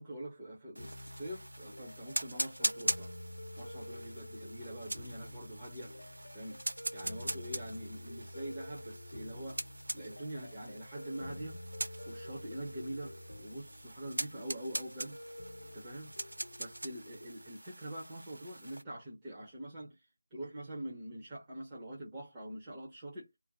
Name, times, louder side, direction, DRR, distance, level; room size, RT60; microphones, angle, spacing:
voice 1, 0.0-3.1 3.6-5.9 6.3-6.6 6.9-9.6 9.9-11.6 12.0-15.2 15.7-20.0 20.3-23.3, right 1 dB, 10° right, 0.5 m, -44 dB
sound 1, 0.7-18.8, right 1 dB, 70° right, 0.8 m, -42 dB
sound 2, 0.8-17.5, left 1 dB, 90° left, 0.6 m, -48 dB
2.4 x 2.1 x 2.6 m
figure-of-eight pair, 180°, 0 cm